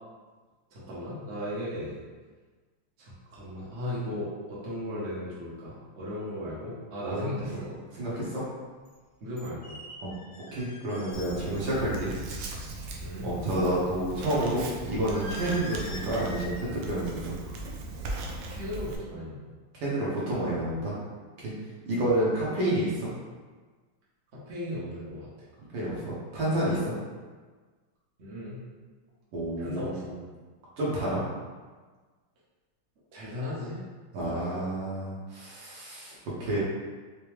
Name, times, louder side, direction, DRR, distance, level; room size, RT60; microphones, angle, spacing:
voice 1, 0.7-2.0 3.0-7.7 9.2-9.8 13.0-13.3 18.5-19.4 21.9-22.1 24.5-25.3 28.2-28.6 29.6-30.1 33.1-33.8 34.2-34.6, left 1 dB, 45° right, -8 dB, 0.9 m, -36 dB
voice 2, 7.1-7.6 7.9-8.4 10.0-10.1 10.5-12.1 13.2-17.5 19.7-20.9 21.4-21.5 21.8-23.1 25.7-26.9 29.3-30.1 30.8-31.2 34.1-36.6, right 1 dB, 60° right, -7 dB, 1.6 m, -29 dB
sound 1, 7.5-7.6 8.9-9.0 9.4-11.7 12.0-12.4 15.1-16.7 16.9-17.3 17.6-17.9, left 1 dB, 80° left, 1.7 m, -44 dB
Writing, 11.1-19.0, right 2 dB, 90° right, 1.5 m, -38 dB
5.0 x 2.2 x 3.1 m, 1.4 s
omnidirectional pair, 2.4 m